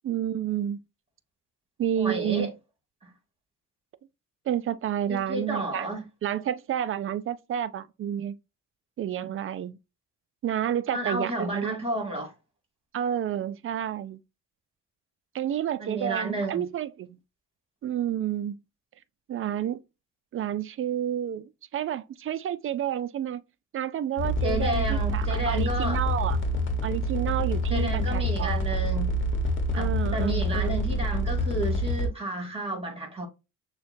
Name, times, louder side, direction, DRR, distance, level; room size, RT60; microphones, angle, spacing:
voice 1, 0.0-0.8 1.8-2.5 4.5-5.9 6.2-8.3 9.0-9.8 10.4-11.8 12.9-14.2 15.3-17.2 17.8-18.5 19.3-19.8 20.3-23.4 23.7-26.4 26.8-28.7 29.7-30.8, right 10 dB, 45° right, 0.5 m, -30 dB
voice 2, 2.0-2.5 3.0-3.1 5.1-6.0 10.9-12.3 15.8-16.6 24.4-26.0 27.7-29.1 29.8-33.3, right 1 dB, 20° right, 2.1 m, -31 dB
sound 1, 24.2-32.1, equal, 40° left, 1.2 m, -27 dB
6.3 x 2.3 x 2.6 m
cardioid pair, 90°, 30 cm